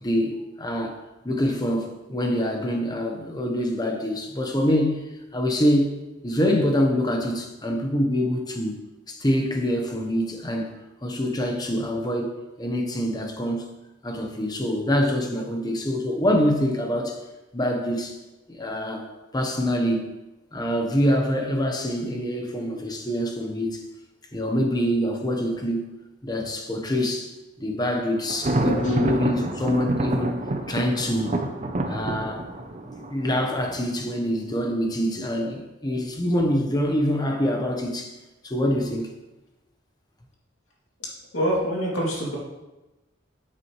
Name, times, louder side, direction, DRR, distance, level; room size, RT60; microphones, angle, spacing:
voice 1, 0.0-1.0 1.2-5.0 5.3-6.0 6.2-8.8 9.1-13.7 14.0-17.2 17.5-18.2 18.5-19.1 19.3-20.1 20.5-23.9 24.3-25.9 26.2-27.3 27.6-31.5 31.8-32.4 32.9-38.1 38.4-39.1, equal, 20° left, 3 dB, 1.0 m, -25 dB
Thunder, 28.3-34.1, right 2 dB, 35° right, 0.6 m, -28 dB
voice 2, 28.6-29.1 35.4-35.5 35.8-35.9 41.0-42.4, equal, 90° left, -3 dB, 2.6 m, -27 dB
9.6 x 7.6 x 3.2 m, 1.0 s
head